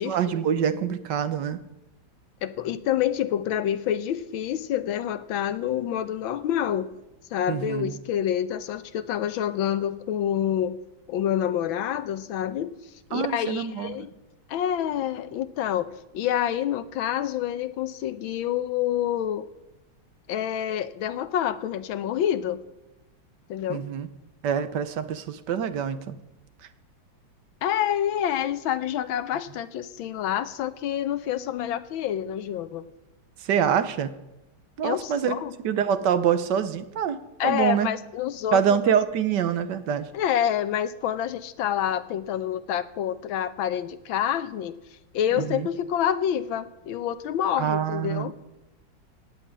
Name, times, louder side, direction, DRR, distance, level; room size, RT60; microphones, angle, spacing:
voice 1, 0.0-1.6 7.5-7.9 13.1-13.9 23.7-24.1 24.4-26.2 33.4-34.2 34.8-35.3 35.6-37.9 38.5-40.1 45.3-45.7 47.6-48.3, right 8 dB, 65° right, 12 dB, 1.4 m, -25 dB
voice 2, 2.4-6.9 7.3-10.8 11.1-12.8 13.1-14.1 14.5-19.5 20.3-22.6 23.5-23.9 27.6-32.8 34.8-35.5 37.4-38.6 40.1-44.7 45.1-48.3, left 10 dB, 80° left, 13 dB, 1.6 m, -27 dB
16.5 x 5.8 x 9.8 m, 0.97 s
omnidirectional pair, 2.2 m